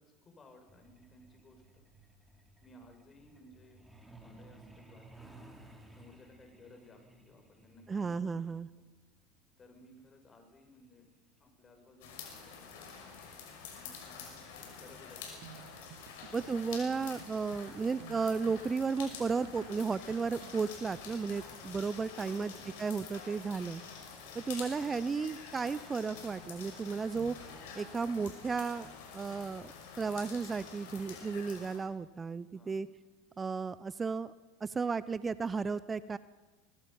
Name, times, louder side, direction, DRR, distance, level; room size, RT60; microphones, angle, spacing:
voice 1, 0.0-1.9 2.6-3.8 4.1-5.5 6.0-8.5 9.6-11.1 11.4-13.2 13.7-15.4 16.2-17.3 17.8-18.1 22.3-22.7 24.6-25.3 32.5-32.8, left 2 dB, 25° left, 4 dB, 6.2 m, -59 dB
Truck, 0.7-13.0 14.2-14.4 14.8-15.0 15.3-15.6 15.9-16.0 16.5-16.6, right 2 dB, 5° right, 3.8 m, -58 dB
voice 2, 7.9-8.7 16.3-22.5 22.8-23.8 24.3-27.4 27.8-28.9 29.1-29.7 30.0-32.9 33.4-34.3 34.6-36.2, right 5 dB, 20° right, 17 dB, 0.7 m, -34 dB
sound 1, 12.0-31.8, left 6 dB, 65° left, 5.7 m, -48 dB
sound 2, 15.4-20.6, right 13 dB, 60° right, 1.3 m, -54 dB
24.5 x 20.5 x 5.7 m, 1.2 s
hypercardioid pair, 80°, 0 cm